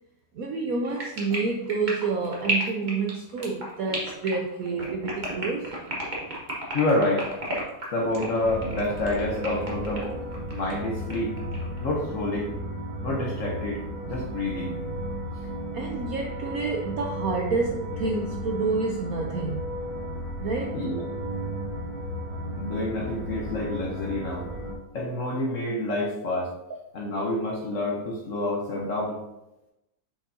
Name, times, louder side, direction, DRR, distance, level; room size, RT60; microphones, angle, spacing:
voice 1, 0.3-5.7 7.7-7.9 15.7-19.7 20.4-20.8, right 4 dB, 70° right, 1 dB, 0.8 m, -29 dB
sound 1, 0.8-10.7 11.1-11.8, right 1 dB, 25° right, 1.3 m, -33 dB
voice 2, 6.7-7.3 7.9-10.1 10.5-11.3 11.8-12.5 13.0-14.7 20.7-21.0 22.6-24.5 24.9-26.5 26.9-29.2, left 2 dB, 50° left, -1 dB, 1.1 m, -28 dB
sound 2, 8.4-24.7, right 1 dB, 90° right, 2.4 m, -34 dB
7.1 x 5.2 x 2.7 m, 0.93 s
omnidirectional pair, 2.1 m